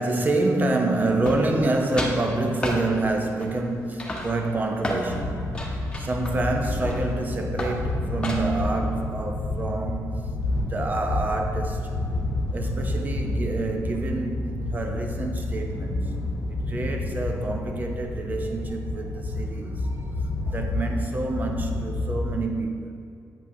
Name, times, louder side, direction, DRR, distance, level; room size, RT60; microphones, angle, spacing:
voice 1, 0.0-5.6 6.0-12.0 12.5-16.1 16.7-23.0, right 2 dB, 30° right, 0.6 m, -27 dB
sound 1, 1.3-1.7 2.0-2.2 2.6-2.8 3.4-3.7 4.0-5.1 5.5-7.2 7.6-7.8 8.2-8.6, left 1 dB, 15° left, 0.9 m, -31 dB
sound 2, 5.1-22.4, left 2 dB, 80° left, 0.8 m, -29 dB
8.5 x 5.6 x 2.7 m
cardioid pair, 130°, 6 cm